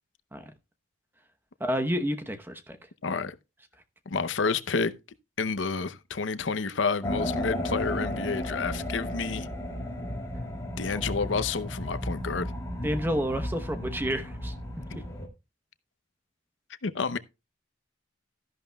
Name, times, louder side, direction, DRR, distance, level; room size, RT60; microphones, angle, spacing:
voice 1, 1.6-2.8 12.8-14.5, equal, 10° right, 0.9 m, -29 dB
voice 2, 3.0-3.4 4.1-4.9 5.4-9.5 10.8-12.5 16.8-17.2, left 4 dB, 80° left, 0.7 m, -29 dB
sound 1, 7.0-15.3, left 1 dB, 15° left, 2.5 m, -34 dB
13.0 x 11.0 x 2.3 m
head